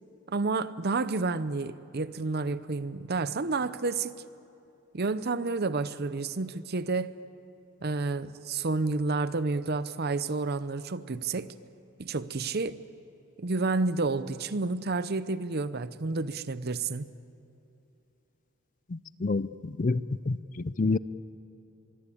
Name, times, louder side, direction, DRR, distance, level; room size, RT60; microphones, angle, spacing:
voice 1, 0.3-4.1 4.9-7.1 7.8-11.5 12.0-12.8 13.4-17.0, right 3 dB, 50° right, 0.7 m, -30 dB
voice 2, 18.9-21.0, left 3 dB, 40° left, 0.5 m, -29 dB
24.5 x 23.0 x 8.6 m
head